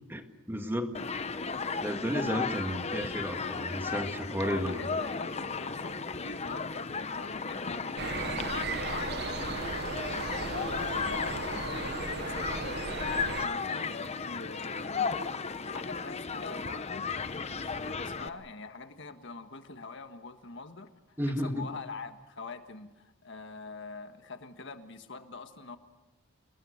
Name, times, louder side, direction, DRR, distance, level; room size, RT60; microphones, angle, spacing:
voice 1, 0.1-0.9 1.8-4.9 21.2-21.7, equal, 10° right, 6 dB, 1.8 m, -33 dB
Human group actions, 0.9-18.3, left 5 dB, 30° left, 0.9 m, -35 dB
voice 2, 4.4-15.2 15.6-25.8, left 4 dB, 60° left, 8 dB, 1.6 m, -45 dB
sound 1, 8.0-13.5, right 4 dB, 55° right, 1.1 m, -36 dB
29.0 x 20.5 x 6.6 m, 1.1 s
head